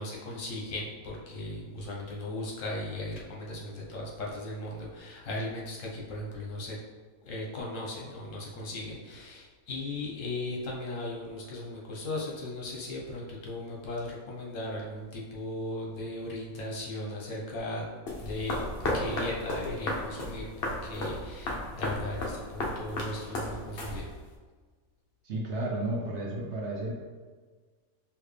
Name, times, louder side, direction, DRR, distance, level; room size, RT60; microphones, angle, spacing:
voice 1, 0.0-6.8 7.2-17.9 18.2-18.6 18.9-24.1, left 2 dB, 65° left, -3 dB, 1.2 m, -37 dB
sound 1, 18.1-24.4, left 1 dB, 50° left, 0.8 m, -34 dB
voice 2, 25.2-26.9, right 1 dB, 60° right, -1 dB, 0.9 m, -32 dB
4.5 x 2.8 x 3.2 m, 1.4 s
omnidirectional pair, 1.5 m